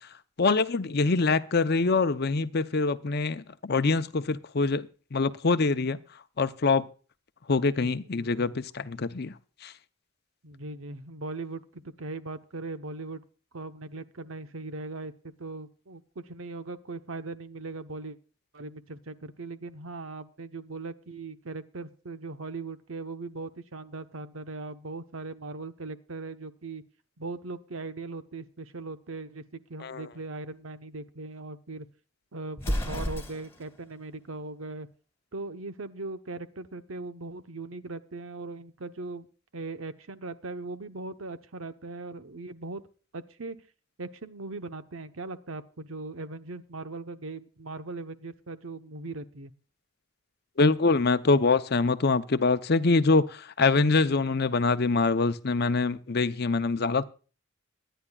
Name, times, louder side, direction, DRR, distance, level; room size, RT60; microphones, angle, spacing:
voice 1, 0.4-6.0 6.4-6.8 7.5-9.3 9.6-9.7 29.8-30.1 50.6-57.0, left 3 dB, 50° left, 0.7 m, -24 dB
voice 2, 8.2-8.6 10.4-13.2 13.5-18.2 18.5-26.8 27.2-31.9 32.3-34.9 35.3-39.3 39.5-42.8 43.1-43.6 44.0-49.5, right 3 dB, 80° right, 1.0 m, -39 dB
Explosion, 32.6-33.7, equal, 10° left, 2.0 m, -31 dB
23.5 x 10.0 x 2.4 m
head